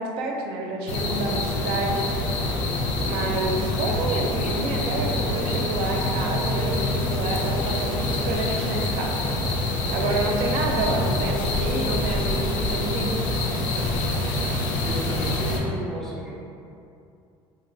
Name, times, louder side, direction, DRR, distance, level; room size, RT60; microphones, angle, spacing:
voice 1, 0.0-2.1 3.1-9.2 9.9-13.1, right 2 dB, 75° right, 0 dB, 0.4 m, -28 dB
sound 1, 0.9-15.6, left 2 dB, 90° left, 0.4 m, -26 dB
voice 2, 14.8-16.4, equal, 5° left, -6 dB, 0.3 m, -33 dB
2.9 x 2.5 x 2.6 m, 2.6 s
cardioid pair, 160°, 10 cm